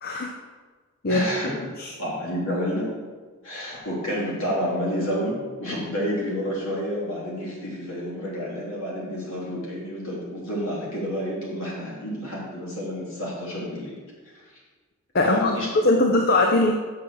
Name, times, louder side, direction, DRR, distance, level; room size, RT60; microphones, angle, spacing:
voice 1, 0.0-0.3 1.0-1.2 1.8-1.9 15.1-16.7, left 2 dB, 45° left, 2 dB, 0.6 m, -21 dB
voice 2, 1.1-1.5 2.0-2.9 3.4-13.9 14.2-14.3 15.2-15.7, equal, 60° left, -5 dB, 3.1 m, -29 dB
7.7 x 5.6 x 6.2 m, 1.4 s
head